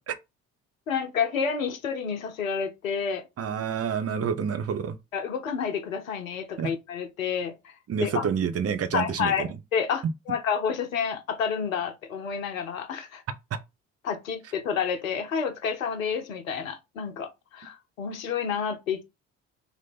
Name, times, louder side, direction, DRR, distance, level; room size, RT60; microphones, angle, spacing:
voice 1, 0.9-3.2 5.1-7.7 8.0-8.3 8.9-13.2 14.0-19.0, left 6 dB, 85° left, 0.8 m, -29 dB
voice 2, 3.4-5.0 6.6-6.7 7.9-9.5, right 7 dB, 35° right, 0.9 m, -28 dB
3.0 x 2.8 x 4.2 m
figure-of-eight pair, 50°, 40 cm